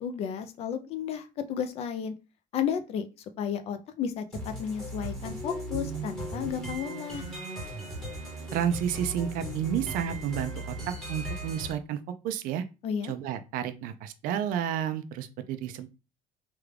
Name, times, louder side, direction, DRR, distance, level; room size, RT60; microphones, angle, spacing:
voice 1, 0.0-2.1 2.5-3.1 3.4-7.2 12.8-13.1, left 8 dB, 40° left, 9 dB, 0.4 m, -33 dB
sound 1, 4.3-11.7, right 1 dB, 5° left, 1.0 m, -37 dB
voice 2, 8.5-12.0 12.2-12.6 13.0-15.9, right 9 dB, 60° right, 10 dB, 0.4 m, -31 dB
3.5 x 2.3 x 3.2 m, 0.29 s
cardioid pair, 170°, 16 cm